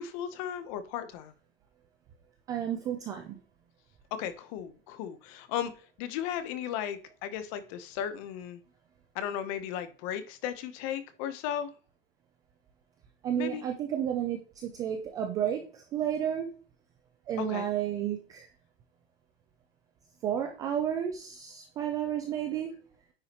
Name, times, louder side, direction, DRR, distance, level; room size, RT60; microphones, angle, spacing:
voice 1, 0.0-1.3 4.2-5.7 6.0-8.6 9.1-11.7 13.4-13.6 17.4-17.7, left 10 dB, 35° left, 12 dB, 0.8 m, -35 dB
voice 2, 2.5-3.4 13.2-16.5 17.3-18.5 20.2-22.7, right 9 dB, 15° right, 5 dB, 0.3 m, -32 dB
9.5 x 4.8 x 2.9 m, 0.39 s
supercardioid pair, 155°, 30 cm